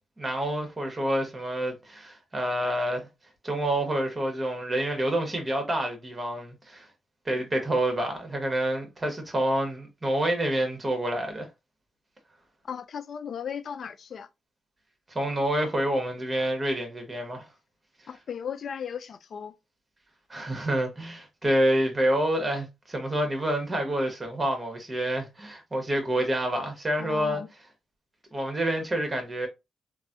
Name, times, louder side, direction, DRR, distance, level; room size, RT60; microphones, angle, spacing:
voice 1, 0.2-3.1 3.4-6.9 7.2-11.5 15.1-17.5 20.3-27.4 28.3-29.5, right 1 dB, 30° right, 1.4 m, -28 dB
voice 2, 12.6-14.3 18.1-19.5 27.0-27.5, left 7 dB, 65° left, 0.3 m, -36 dB
3.1 x 2.6 x 2.6 m
supercardioid pair, 45°, 0 cm